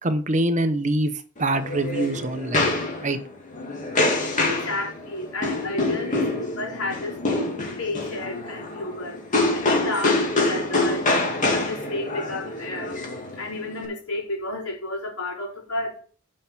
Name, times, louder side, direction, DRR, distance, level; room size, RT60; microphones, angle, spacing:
voice 1, 0.0-1.1 1.4-2.7 3.0-3.2, right 1 dB, 35° right, 0.9 m, -24 dB
sound 1, 1.4-13.8, left 2 dB, 35° left, 2.6 m, -26 dB
voice 2, 4.5-7.2 7.8-9.2 9.5-11.0 11.5-13.0 13.4-16.0, left 2 dB, 85° left, 4.5 m, -31 dB
9.5 x 5.7 x 6.0 m
head